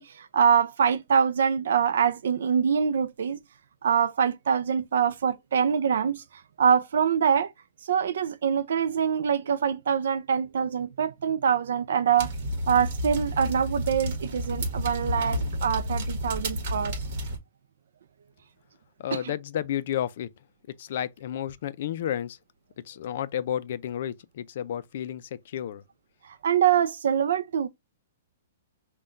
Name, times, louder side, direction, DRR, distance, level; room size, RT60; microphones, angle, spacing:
voice 1, 0.0-3.4 3.8-6.2 6.6-7.5 7.8-12.3 12.7-17.0 19.1-19.2 26.4-27.7, right 7 dB, 70° right, 0.4 m, -24 dB
sound 1, 12.2-17.4, equal, 40° right, 1.4 m, -31 dB
voice 2, 19.0-20.3 20.8-22.4 22.9-25.8, left 10 dB, 45° left, 0.3 m, -31 dB
5.5 x 2.2 x 2.5 m
hypercardioid pair, 175°, 0 cm